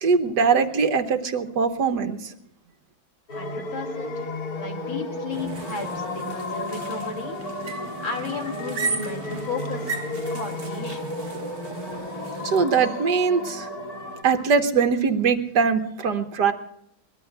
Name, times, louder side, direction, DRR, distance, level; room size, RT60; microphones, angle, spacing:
voice 1, 0.0-2.3 12.4-13.7 14.2-16.5, right 5 dB, 60° right, 7 dB, 1.6 m, -22 dB
voice 2, 3.3-4.2 4.5-11.2, left 4 dB, 80° left, 2 dB, 3.4 m, -34 dB
sound 1, 3.3-14.2, left 2 dB, 50° left, 2.6 m, -33 dB
sound 2, 5.3-12.6, right 4 dB, 40° right, 1.0 m, -35 dB
22.5 x 20.0 x 2.3 m, 0.73 s
omnidirectional pair, 2.1 m